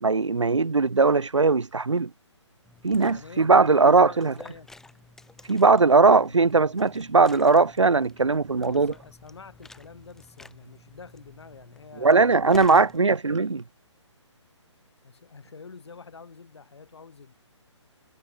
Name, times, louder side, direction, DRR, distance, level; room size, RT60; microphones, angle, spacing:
voice 1, 0.0-2.1 2.8-4.3 5.5-8.9 12.0-13.6, right 4 dB, 75° right, 0.8 m, -19 dB
Liquid, 2.6-13.0, left 2 dB, 5° left, 1.7 m, -50 dB
voice 2, 3.0-4.7 6.1-6.2 8.6-12.1 12.6-13.2 15.0-17.3, left 5 dB, 60° left, 3.5 m, -46 dB
figure-of-eight pair, 135°, 16 cm